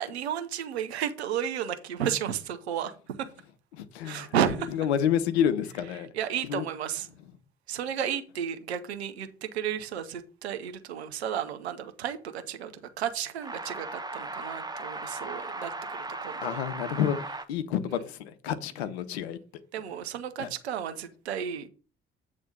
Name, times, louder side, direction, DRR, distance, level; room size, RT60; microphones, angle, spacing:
voice 1, 0.0-3.3 4.0-4.7 6.1-7.1 7.7-16.6 19.7-21.7, right 9 dB, 85° right, 0.8 m, -33 dB
voice 2, 3.7-4.3 4.7-6.1 6.5-6.7 16.4-19.4 20.4-20.5, left 9 dB, 80° left, 0.7 m, -29 dB
sound 1, 13.4-17.4, right 2 dB, 10° right, 1.0 m, -37 dB
8.4 x 3.5 x 6.5 m
figure-of-eight pair, 40°, 32 cm